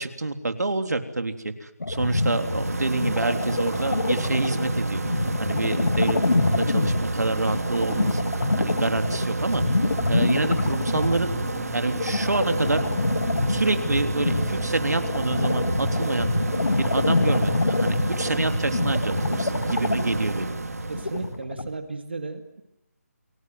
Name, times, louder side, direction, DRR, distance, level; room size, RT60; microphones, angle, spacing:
voice 1, 0.0-5.0 5.4-8.2 8.6-9.6 10.1-11.3 11.7-12.8 13.5-16.3 16.8-20.5, right 2 dB, 80° right, 7 dB, 3.4 m, -27 dB
sound 1, 1.8-21.7, left 2 dB, 80° left, 2.9 m, -26 dB
sound 2, 1.9-21.3, right 3 dB, 65° right, 1.9 m, -30 dB
sound 3, 9.8-21.0, left 4 dB, ahead, 2.2 m, -41 dB
voice 2, 20.9-22.6, right 3 dB, 40° right, 8 dB, 2.0 m, -34 dB
29.0 x 21.0 x 7.7 m, 0.83 s
figure-of-eight pair, 180°, 9 cm